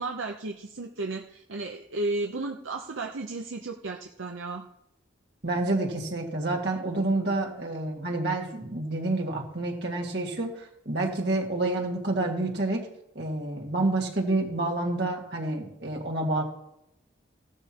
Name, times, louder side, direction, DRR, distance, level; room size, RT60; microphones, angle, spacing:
voice 1, 0.0-4.7, right 2 dB, 75° right, 2 dB, 0.7 m, -33 dB
voice 2, 5.4-12.8 13.2-16.4, right 2 dB, 55° right, 0 dB, 1.9 m, -28 dB
16.0 x 12.0 x 2.9 m, 0.82 s
head